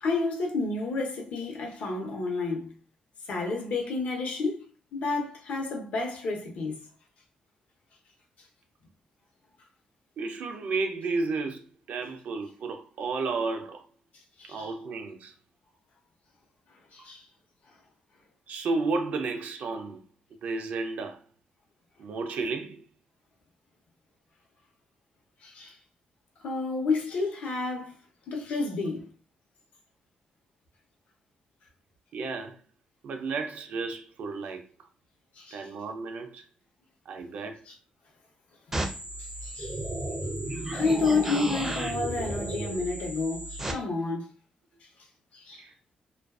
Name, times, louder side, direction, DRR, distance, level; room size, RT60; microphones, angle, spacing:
voice 1, 0.0-2.7 3.3-4.6 4.9-6.8 14.4-14.7 16.9-17.2 25.4-25.7 26.4-28.0 28.3-29.1 35.4-35.7 37.7-37.8 39.4-39.8 40.7-44.3 45.3-45.6, left 3 dB, 75° left, 0.8 m, -30 dB
voice 2, 10.2-13.8 14.5-15.3 17.0-17.1 18.5-20.0 20.4-21.2 22.0-22.8 32.1-32.6 33.0-34.6 35.5-36.4 37.1-37.6 45.6-45.7, right 3 dB, 75° right, 0.5 m, -32 dB
sound 1, 38.7-43.7, right 1 dB, 15° right, 0.4 m, -33 dB
2.4 x 2.3 x 2.3 m
cardioid pair, 110°, 3 cm